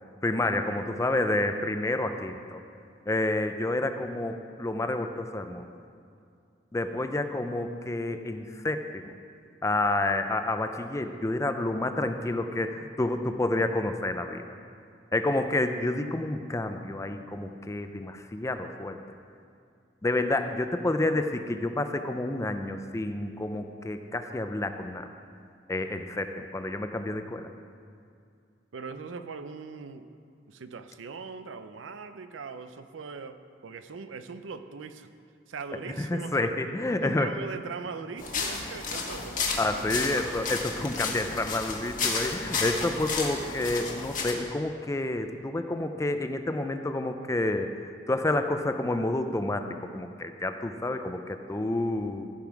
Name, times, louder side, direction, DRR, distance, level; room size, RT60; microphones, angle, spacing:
voice 1, 0.2-2.6 3.1-5.7 6.7-9.0 9.6-14.4 15.1-19.0 20.0-25.1 25.7-27.5 36.0-37.3 39.6-52.2, left 2 dB, 15° left, 8 dB, 0.4 m, -29 dB
voice 2, 28.7-30.1 30.5-35.1 35.5-36.5 37.0-40.3, right 5 dB, 85° right, 10 dB, 0.5 m, -40 dB
sound 1, 38.2-44.3, left 4 dB, 45° left, 1.2 m, -32 dB
15.5 x 5.4 x 4.7 m, 2.4 s
head